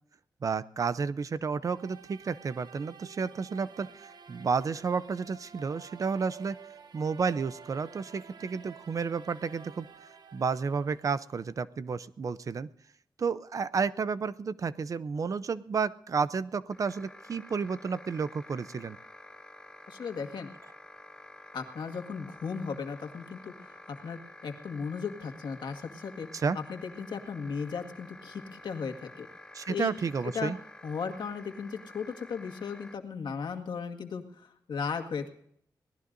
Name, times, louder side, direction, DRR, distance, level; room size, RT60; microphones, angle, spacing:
voice 1, 0.4-6.6 6.9-9.9 10.3-12.7 13.2-19.0 26.3-26.6 29.5-30.6, right 5 dB, 50° right, 15 dB, 0.6 m, -31 dB
sound 1, 1.6-11.5, right 6 dB, 65° right, 1.2 m, -51 dB
sound 2, 16.7-33.0, left 1 dB, 10° left, 0.6 m, -50 dB
voice 2, 19.9-20.5 21.5-26.3 26.5-29.3 29.7-29.9 30.2-30.5 30.8-35.3, left 5 dB, 85° left, 5 dB, 1.8 m, -36 dB
23.5 x 18.0 x 2.6 m, 0.67 s
wide cardioid pair, 170°, 8 cm